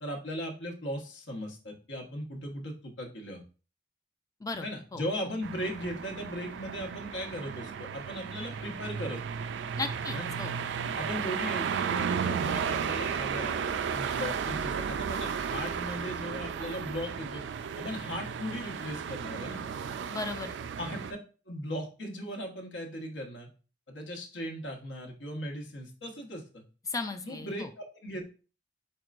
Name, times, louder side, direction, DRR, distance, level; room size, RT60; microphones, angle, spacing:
voice 1, 0.0-3.4 4.6-9.2 10.1-10.3 10.9-17.4 17.8-19.6 20.8-21.0 21.5-23.5 23.9-26.6 27.2-28.2, equal, 85° left, 1 dB, 1.1 m, -38 dB
sound 1, 5.4-21.1, right 7 dB, 70° right, 0.3 m, -34 dB
voice 2, 9.8-10.5 20.1-20.5 26.9-27.7, left 3 dB, 20° left, 8 dB, 0.4 m, -35 dB
4.6 x 4.3 x 2.5 m, 0.35 s
head